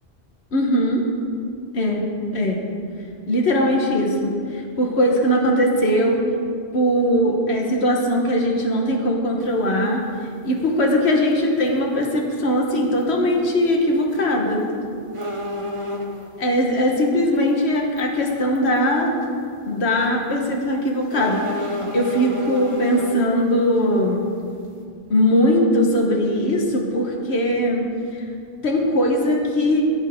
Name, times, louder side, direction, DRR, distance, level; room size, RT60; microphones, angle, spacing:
voice 1, 0.5-1.0 1.7-2.0 2.3-2.6 3.3-6.2 6.7-10.0 10.4-14.6 16.4-19.1 19.7-24.2 25.1-27.8 28.1-28.2 28.6-29.8, equal, 80° left, 0 dB, 1.5 m, -20 dB
sound 1, 9.4-9.5 11.1-11.3 11.7-11.8 12.0-12.1 14.0-14.3 14.6-14.7 15.1-16.3 17.4-17.5 18.0-18.1 18.6-18.8 19.2-19.3 21.1-23.3, left 1 dB, 30° right, 1.2 m, -30 dB
16.5 x 8.3 x 3.6 m, 2.4 s
omnidirectional pair, 1.1 m